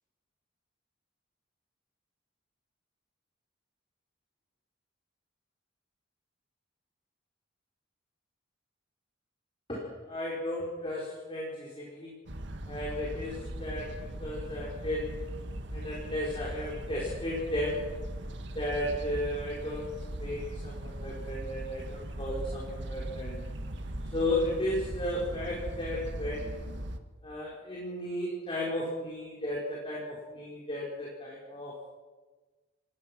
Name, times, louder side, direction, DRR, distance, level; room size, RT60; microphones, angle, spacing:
voice 1, 9.7-12.1 12.7-15.1 15.7-17.9 18.5-19.9 20.1-23.4 24.1-26.6 27.2-31.9, left 1 dB, 25° left, -5 dB, 5.1 m, -34 dB
sound 1, 12.3-27.0, right 1 dB, 65° right, 1.8 m, -39 dB
27.5 x 19.5 x 6.1 m, 1.3 s
head